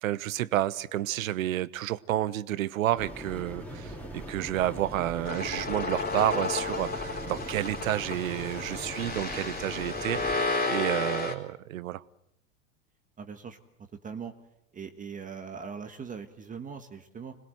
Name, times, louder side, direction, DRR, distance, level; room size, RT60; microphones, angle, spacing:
voice 1, 0.0-12.0, right 14 dB, 80° right, 18 dB, 1.1 m, -30 dB
sound 1, 3.0-10.4, equal, 5° left, 3.8 m, -41 dB
sound 2, 5.3-11.3, left 3 dB, 20° left, 4.0 m, -32 dB
voice 2, 13.2-13.6 14.0-14.3 14.7-17.3, right 6 dB, 20° right, 7 dB, 1.5 m, -40 dB
26.0 x 20.5 x 7.8 m, 0.78 s
hypercardioid pair, 115°, 40 cm